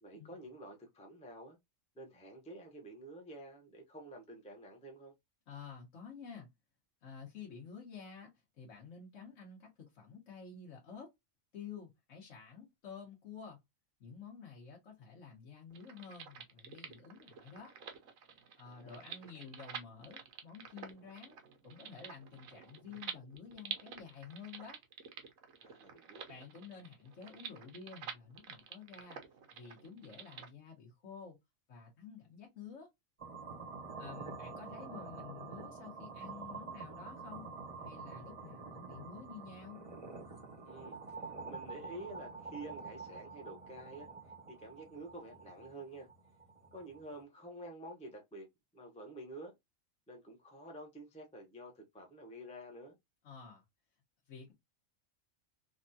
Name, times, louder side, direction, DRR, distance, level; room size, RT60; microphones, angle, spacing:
voice 1, 0.0-1.6 1.9-5.1 18.6-19.0 19.3-19.4 25.6-26.4 40.6-41.2 41.4-44.1 44.5-46.1 46.7-48.5 48.7-49.5 50.1-53.0, right 1 dB, 5° left, 0.6 m, -49 dB
voice 2, 5.5-6.5 7.0-11.1 11.5-13.6 14.0-17.7 18.6-24.8 26.3-29.2 29.5-31.4 31.7-32.9 34.0-37.4 37.8-39.8 53.2-53.6 54.3-54.5, left 6 dB, 65° left, 1.4 m, -51 dB
sound 1, 15.7-30.5, right 7 dB, 80° right, 1.1 m, -49 dB
sound 2, 33.2-47.2, right 4 dB, 30° right, 0.7 m, -47 dB
3.5 x 2.3 x 2.6 m
omnidirectional pair, 1.4 m